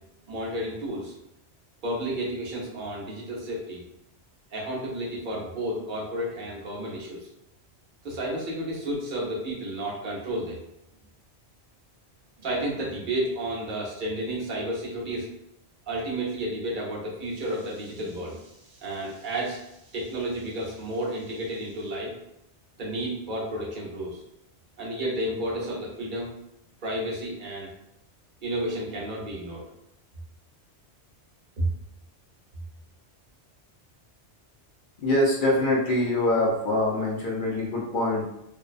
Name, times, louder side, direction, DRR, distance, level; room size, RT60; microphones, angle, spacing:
voice 1, 0.3-1.1 1.8-3.8 4.5-7.3 8.0-10.6 12.4-15.3 15.9-22.2 22.8-24.2 24.8-26.3 26.8-27.7 28.4-29.6 31.6-31.7, right 1 dB, 50° right, -4 dB, 0.9 m, -31 dB
voice 2, 35.0-38.3, left 1 dB, 60° left, -3 dB, 0.6 m, -24 dB
2.5 x 2.1 x 2.5 m, 0.82 s
omnidirectional pair, 1.2 m